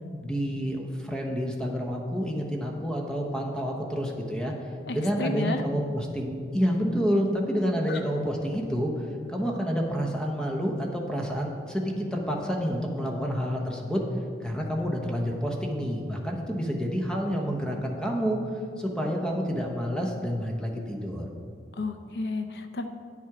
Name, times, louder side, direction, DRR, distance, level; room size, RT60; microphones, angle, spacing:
voice 1, 0.2-4.5 4.9-14.0 14.4-18.4 18.8-21.3, equal, 5° left, 0 dB, 0.8 m, -29 dB
voice 2, 4.9-5.6 7.9-8.0 21.7-22.9, left 3 dB, 65° left, 7 dB, 0.5 m, -32 dB
9.0 x 7.4 x 4.8 m, 2.3 s
head